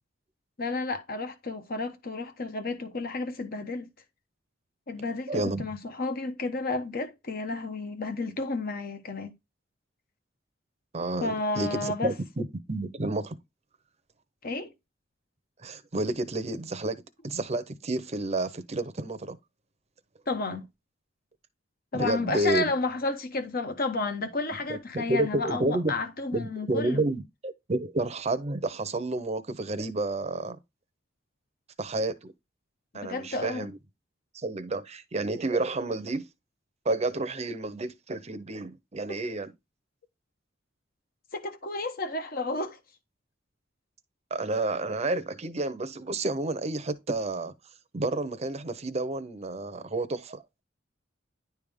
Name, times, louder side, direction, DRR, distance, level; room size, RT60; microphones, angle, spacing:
voice 1, 0.6-3.9 4.9-9.3 11.2-12.1 14.4-14.7 20.3-20.6 21.9-27.0 32.9-33.7 39.1-39.2 41.3-42.8, left 3 dB, 50° left, 1.1 m, -31 dB
voice 2, 5.3-5.6 10.9-13.3 15.6-19.4 21.9-22.7 24.7-25.9 26.3-30.6 31.8-32.3 32.9-33.7 34.3-36.3 36.8-39.5 44.3-47.5 47.9-50.4, right 2 dB, 35° right, 0.7 m, -30 dB
10.5 x 3.5 x 3.6 m
head